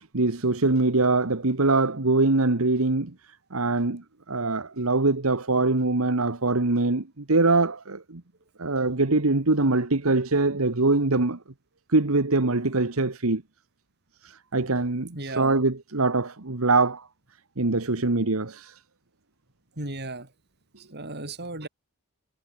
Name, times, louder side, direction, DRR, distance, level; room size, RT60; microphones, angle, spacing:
voice 1, 0.0-3.1 3.5-8.2 8.6-11.4 11.9-13.4 14.2-17.1 17.6-18.7, right 3 dB, 80° right, 1.6 m, -23 dB
voice 2, 15.1-15.6 19.8-20.3 20.8-21.7, right 2 dB, 50° right, 6.8 m, -35 dB
head